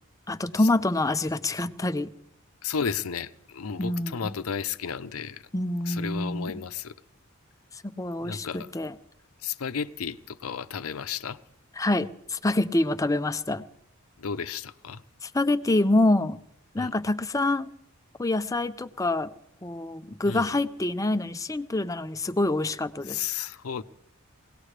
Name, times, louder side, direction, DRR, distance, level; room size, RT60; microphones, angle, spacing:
voice 1, 0.3-2.1 3.8-4.3 5.5-6.6 7.7-8.9 11.8-13.6 15.2-16.4 16.7-17.7 18.2-19.3 19.6-23.2, left 2 dB, 15° left, 0.5 m, -26 dB
voice 2, 2.6-5.4 5.9-6.9 8.2-8.7 9.4-11.4 14.2-15.0 16.8-16.9 20.2-20.5 23.1-23.8, left 6 dB, 85° left, 0.6 m, -33 dB
22.5 x 18.0 x 3.3 m
head